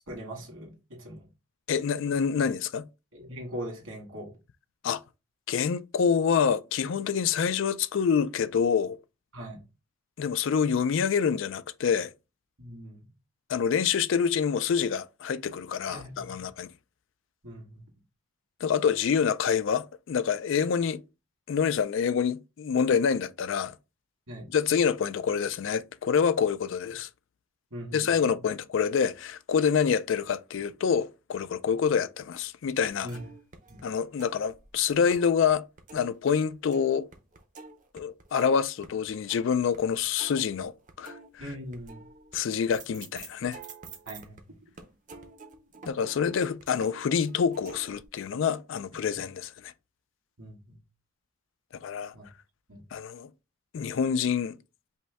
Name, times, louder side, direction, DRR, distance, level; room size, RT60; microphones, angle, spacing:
voice 1, 0.1-1.2 3.1-4.3 9.3-9.6 12.6-13.1 15.9-16.5 17.4-17.8 24.3-24.5 27.7-28.0 33.0-33.2 33.7-33.8 41.4-42.0 44.1-44.4 50.4-50.8 52.1-52.3 52.7-52.8, equal, 80° right, 1.9 m, -40 dB
voice 2, 1.7-2.9 4.8-5.0 5.5-9.0 10.2-12.1 13.5-16.7 18.6-21.0 21.5-23.8 24.5-27.1 27.9-33.1 33.8-35.6 35.9-37.1 37.9-41.4 42.3-43.6 45.9-49.7 51.8-52.1 52.9-53.3 53.7-54.5, left 7 dB, 60° left, 0.3 m, -27 dB
sound 1, 32.8-35.5 35.8-44.4 44.8-48.1, right 4 dB, 35° right, 0.6 m, -49 dB
5.3 x 2.2 x 3.4 m
head